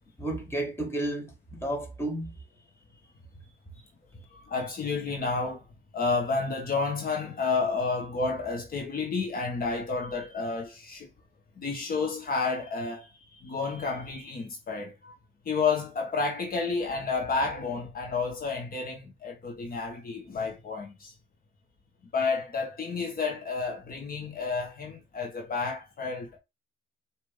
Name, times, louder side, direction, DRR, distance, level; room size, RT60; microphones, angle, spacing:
voice 1, 0.2-2.3, right 1 dB, 10° left, 1.7 m, -32 dB
voice 2, 4.3-5.7 5.9-11.1 11.6-15.1 15.4-21.1 22.1-26.4, left 4 dB, 45° left, 1.3 m, -30 dB
5.1 x 2.9 x 3.6 m
cardioid pair, 90°, 20 cm